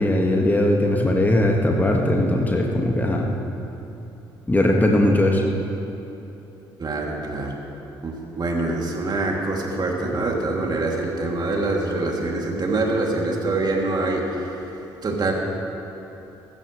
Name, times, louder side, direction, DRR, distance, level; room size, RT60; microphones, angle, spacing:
voice 1, 0.0-3.3 4.5-5.4, left 1 dB, 15° left, 0 dB, 1.7 m, -19 dB
voice 2, 6.8-7.5 8.0-14.6 15.0-15.3, right 2 dB, 35° right, -1 dB, 2.7 m, -25 dB
22.0 x 12.5 x 3.2 m, 3.0 s
figure-of-eight pair, 45°, 12 cm